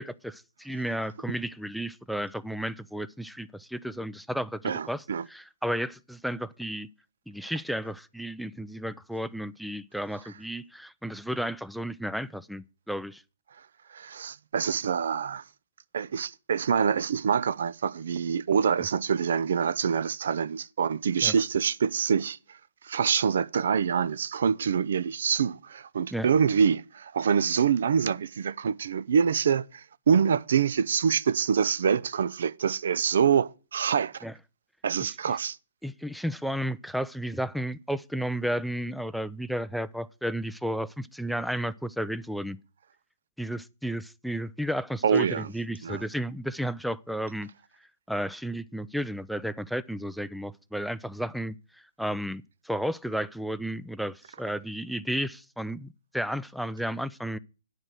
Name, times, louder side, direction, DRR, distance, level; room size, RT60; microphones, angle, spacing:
voice 1, 0.0-6.9 7.3-13.2 21.2-21.3 26.1-26.3 34.2-34.3 35.0-35.1 35.8-42.6 43.4-47.5 48.1-51.5 52.0-57.4, equal, ahead, 0.4 m, -33 dB
voice 2, 4.6-5.2 13.9-15.4 15.9-22.4 22.8-34.2 34.8-35.6 45.0-45.5 45.8-46.0, right 7 dB, 60° right, 0.5 m, -25 dB
9.6 x 5.1 x 7.5 m
figure-of-eight pair, 120°, 0 cm